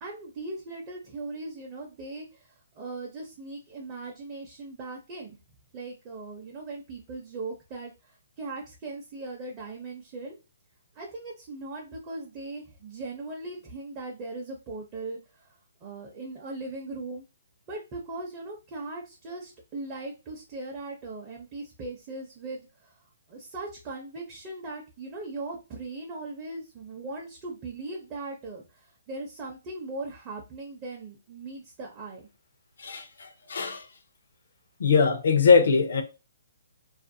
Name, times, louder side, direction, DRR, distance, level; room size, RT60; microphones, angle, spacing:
voice 1, 0.0-5.4 5.7-10.4 10.9-17.2 17.7-32.2, right 2 dB, 25° right, 0.5 m, -39 dB
voice 2, 32.8-33.8 34.8-36.0, left 5 dB, 70° left, 0.6 m, -21 dB
2.4 x 2.1 x 2.6 m
hypercardioid pair, 160°, 0 cm